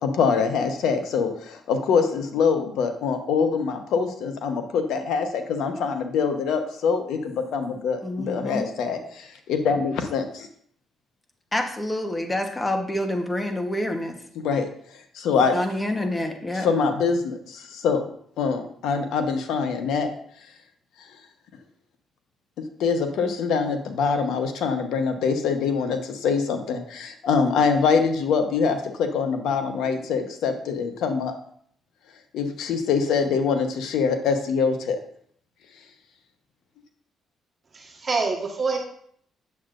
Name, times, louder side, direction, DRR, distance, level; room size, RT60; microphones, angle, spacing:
voice 1, 0.0-10.5 14.3-14.7 15.1-15.6 16.5-18.0 18.4-20.1 22.8-31.3 32.3-35.0, left 5 dB, 80° left, 6 dB, 1.0 m, -24 dB
voice 2, 8.0-8.7 11.5-14.2 15.5-16.7, left 1 dB, 15° left, 5 dB, 1.0 m, -27 dB
voice 3, 37.7-38.8, right 4 dB, 40° right, 0 dB, 1.4 m, -26 dB
8.5 x 7.4 x 2.5 m, 0.63 s
cardioid pair, 90°, 0 cm